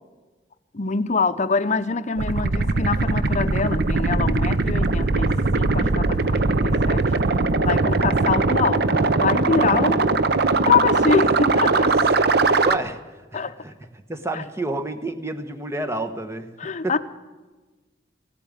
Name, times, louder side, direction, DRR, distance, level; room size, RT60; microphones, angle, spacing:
voice 1, 0.7-5.3 5.6-7.0 7.6-10.2 10.6-11.9 13.3-13.6 14.3-14.4 16.6-17.0, left 4 dB, 40° left, 0.7 m, -24 dB
sound 1, 2.2-12.8, right 3 dB, 60° right, 0.7 m, -20 dB
voice 2, 12.6-13.0 13.3-13.7 14.1-16.5 16.8-17.0, right 2 dB, 15° right, 1.0 m, -29 dB
17.0 x 8.5 x 9.3 m
head